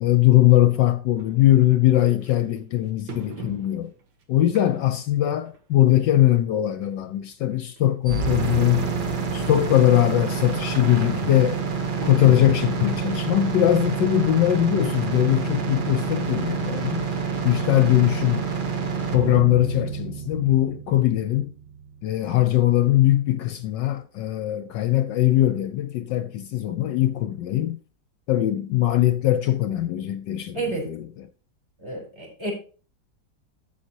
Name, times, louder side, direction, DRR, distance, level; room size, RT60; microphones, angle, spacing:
voice 1, 0.0-3.9 4.3-8.9 9.3-11.6 12.0-17.1 17.4-18.5 19.1-21.5 22.0-27.8 28.3-31.1, left 13 dB, 75° left, 1.3 m, -21 dB
sound 1, 1.2-1.3 2.2-2.3 3.1-4.0 4.5-5.0 5.5-5.6 6.5-6.6 6.8-6.9 7.8-7.9 8.2-8.3 8.5-8.6 8.8-9.3 9.8-9.9 12.0-13.3 13.7-13.9 14.4-14.5, right 3 dB, 75° right, 2.1 m, -38 dB
sound 2, 8.1-22.0, right 5 dB, 40° right, 0.8 m, -28 dB
voice 2, 30.5-30.9 31.8-32.5, right 3 dB, 15° right, 4.6 m, -30 dB
12.5 x 7.9 x 2.9 m
omnidirectional pair, 2.1 m